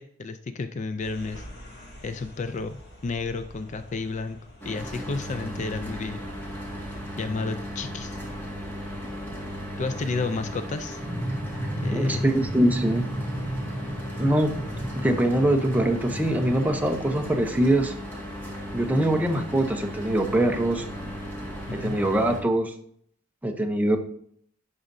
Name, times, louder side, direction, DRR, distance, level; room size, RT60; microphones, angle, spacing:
voice 1, 0.0-1.5 2.0-4.4 4.6-6.2 7.2-8.2 9.8-11.0 11.8-12.3 21.7-22.0, left 3 dB, 35° left, 10 dB, 0.3 m, -31 dB
sound 1, 1.0-7.0, equal, 50° left, 2.8 m, -46 dB
Mechanical fan, 4.6-22.4, equal, 10° left, 1.8 m, -36 dB
sound 2, 11.0-16.7, right 1 dB, 60° right, 1.1 m, -33 dB
voice 2, 11.9-13.0 14.2-14.5 14.9-17.9 18.7-20.8 21.7-22.7 23.4-24.0, right 1 dB, 5° right, 3 dB, 0.7 m, -23 dB
11.0 x 5.0 x 2.6 m, 0.64 s
head